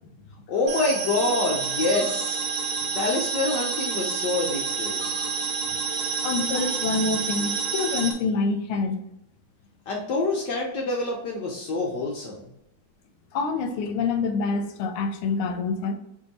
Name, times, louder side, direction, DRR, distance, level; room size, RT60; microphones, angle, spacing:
voice 1, 0.5-2.4 2.9-5.1 9.9-12.4, left 2 dB, 70° left, -2 dB, 1.1 m, -26 dB
sound 1, 0.7-8.1, right 5 dB, 90° right, 0.8 m, -28 dB
voice 2, 6.2-9.0 13.3-15.9, left 4 dB, 85° left, 7 dB, 1.4 m, -26 dB
3.4 x 2.7 x 4.0 m, 0.81 s
omnidirectional pair, 2.3 m